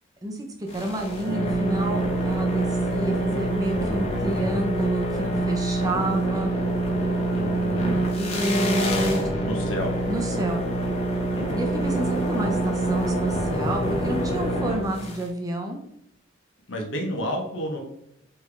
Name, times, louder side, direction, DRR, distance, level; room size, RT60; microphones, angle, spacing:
sound 1, 0.7-15.3, right 1 dB, 30° left, 0.9 m, -25 dB
voice 1, 0.7-6.5 8.2-9.2 10.1-10.7 11.6-15.8, right 1 dB, 20° right, 2 dB, 0.6 m, -29 dB
voice 2, 7.3-8.0 9.4-10.0 11.3-11.6 16.7-17.8, equal, 80° left, 2 dB, 1.2 m, -31 dB
4.3 x 3.3 x 3.5 m, 0.78 s
head